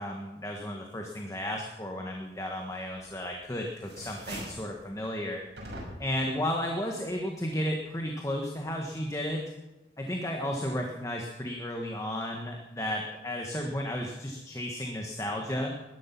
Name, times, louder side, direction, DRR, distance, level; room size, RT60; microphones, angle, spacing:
voice 1, 0.0-5.4 6.0-9.4 10.0-15.7, left 1 dB, 20° left, 1 dB, 1.5 m, -33 dB
sound 1, 3.0-3.4 3.7-4.7 5.6-6.2, right 1 dB, 70° right, 6.1 m, -42 dB
20.0 x 11.5 x 6.0 m, 0.98 s
head